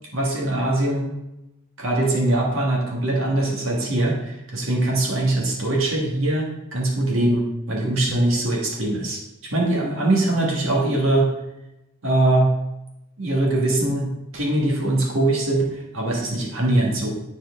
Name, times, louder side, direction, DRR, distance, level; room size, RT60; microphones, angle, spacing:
voice 1, 0.1-1.2 1.8-9.2 9.5-11.3 12.0-12.5 13.2-17.1, right 1 dB, 70° right, -2 dB, 1.6 m, -22 dB
9.9 x 4.4 x 3.6 m, 0.93 s
head